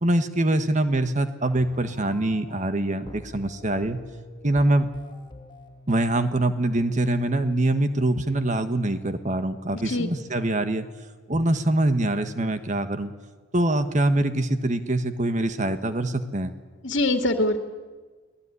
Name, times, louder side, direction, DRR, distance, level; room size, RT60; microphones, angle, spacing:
voice 1, 0.0-4.0 4.4-4.9 5.9-10.9 11.3-13.1 13.5-16.5, right 1 dB, 40° right, 9 dB, 1.5 m, -24 dB
sound 1, 1.6-7.6, left 1 dB, 25° left, 2.6 m, -47 dB
voice 2, 9.7-10.1 16.8-17.6, left 1 dB, 65° left, 6 dB, 2.1 m, -23 dB
29.5 x 19.0 x 9.9 m, 1.4 s
head